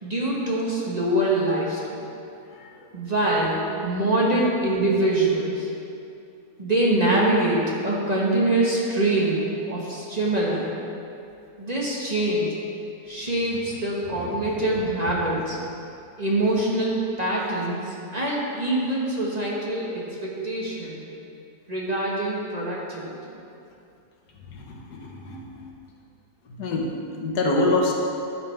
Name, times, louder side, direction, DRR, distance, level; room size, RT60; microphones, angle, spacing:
voice 1, 0.0-2.0 2.9-5.7 6.6-10.7 11.6-12.5 13.0-15.6 16.2-21.0 21.7-23.2, right 1 dB, 25° right, -5 dB, 1.4 m, -24 dB
voice 2, 24.5-25.4 26.5-26.9 27.2-27.9, left 2 dB, 85° left, -1 dB, 1.7 m, -25 dB
13.0 x 7.5 x 3.4 m, 2.6 s
omnidirectional pair, 1.7 m